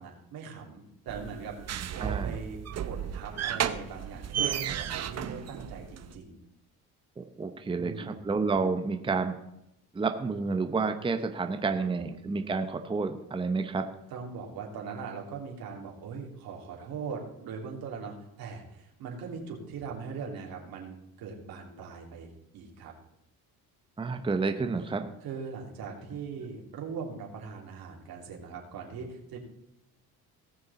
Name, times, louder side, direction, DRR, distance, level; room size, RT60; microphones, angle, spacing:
voice 1, 0.0-2.6 2.8-6.4 7.8-8.2 11.7-12.1 14.1-22.9 25.2-29.4, right 5 dB, 75° right, 0 dB, 3.1 m, -40 dB
sound 1, 1.1-6.1, right 9 dB, 45° right, 0.9 m, -34 dB
voice 2, 2.0-2.4 7.2-9.3 9.9-13.8 24.0-25.1, right 4 dB, 15° right, 7 dB, 0.8 m, -30 dB
18.5 x 6.5 x 4.2 m, 0.84 s
cardioid pair, 120°, 36 cm